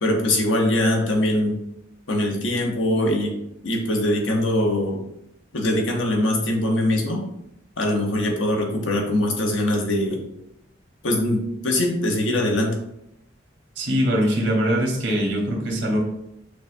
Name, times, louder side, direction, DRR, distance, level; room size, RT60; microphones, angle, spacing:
voice 1, 0.0-1.6 2.1-3.3 3.6-5.0 5.5-7.2 7.8-10.2 11.0-12.8, left 1 dB, 80° left, 1 dB, 0.8 m, -22 dB
voice 2, 13.8-16.0, equal, 75° right, 0 dB, 1.0 m, -22 dB
6.2 x 2.2 x 2.6 m, 0.80 s
head